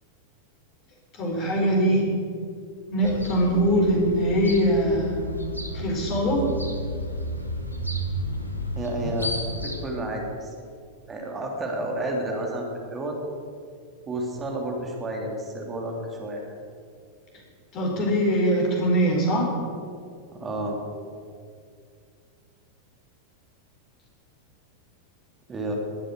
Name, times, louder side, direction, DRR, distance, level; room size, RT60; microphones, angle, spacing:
voice 1, 1.2-2.0 2.9-5.2 5.7-6.4 17.7-19.5, equal, 35° left, 0 dB, 4.2 m, -22 dB
sound 1, 3.0-9.9, equal, 90° left, 1.4 m, -32 dB
voice 2, 8.7-9.3 9.6-10.5 11.1-13.2 14.1-16.4 20.3-20.8 25.5-25.7, right 1 dB, 20° right, 1 dB, 3.3 m, -31 dB
21.5 x 7.6 x 6.6 m, 2.2 s
figure-of-eight pair, 90°, 0 cm